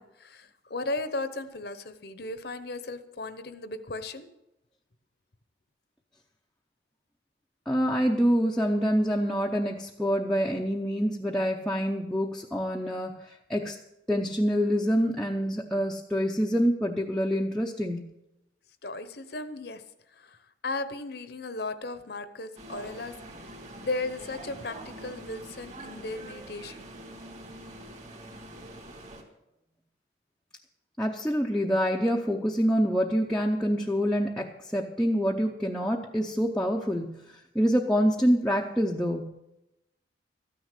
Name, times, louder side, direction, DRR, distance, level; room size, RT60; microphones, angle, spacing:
voice 1, 0.0-4.3 18.8-19.8 20.1-23.5 23.8-26.9, left 2 dB, 60° left, 11 dB, 0.9 m, -36 dB
voice 2, 7.7-13.8 14.1-18.1 31.0-39.4, equal, 5° left, -2 dB, 0.7 m, -26 dB
sound 1, 22.6-29.2, right 1 dB, 40° right, 2.5 m, -44 dB
13.5 x 9.7 x 6.6 m, 0.89 s
head